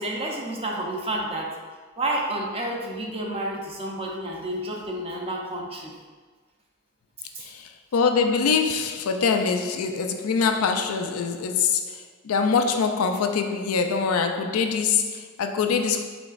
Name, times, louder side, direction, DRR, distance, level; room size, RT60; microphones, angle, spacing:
voice 1, 0.0-1.6 2.0-5.9 7.3-7.4, right 1 dB, 30° right, -1 dB, 0.7 m, -30 dB
voice 2, 7.4-16.0, left 5 dB, 90° left, 6 dB, 0.4 m, -24 dB
5.1 x 3.8 x 2.5 m, 1.4 s
head